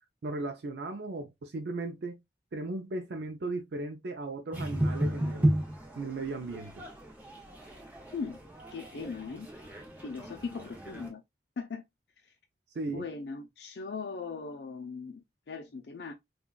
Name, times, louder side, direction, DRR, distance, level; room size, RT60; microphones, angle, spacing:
voice 1, 0.2-2.2 2.5-5.6 6.0-6.8 12.7-13.1, right 2 dB, 75° right, 0.5 m, -36 dB
sound 1, 4.5-11.1, right 1 dB, 10° right, 0.7 m, -33 dB
voice 2, 8.7-9.5 10.0-11.2 11.6-11.8 12.2-12.3 12.9-16.1, left 4 dB, 75° left, 0.5 m, -39 dB
3.7 x 2.3 x 2.3 m
head